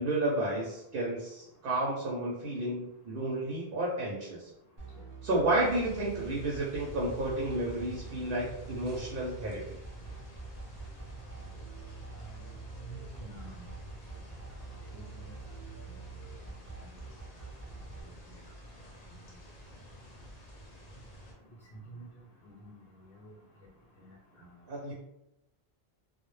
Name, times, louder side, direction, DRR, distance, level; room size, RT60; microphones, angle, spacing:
voice 1, 0.0-4.5 5.2-9.8 24.7-24.9, right 1 dB, 65° right, -4 dB, 0.7 m, -31 dB
sound 1, 4.8-18.0, right 4 dB, 30° right, 0.3 m, -46 dB
sound 2, 5.6-21.3, right 1 dB, 45° left, 0.7 m, -49 dB
voice 2, 12.9-13.7 14.9-15.3 16.8-16.9 22.4-22.8 24.0-24.5, right 1 dB, 75° left, -4 dB, 0.8 m, -49 dB
2.0 x 2.0 x 3.0 m, 0.86 s
omnidirectional pair, 1.1 m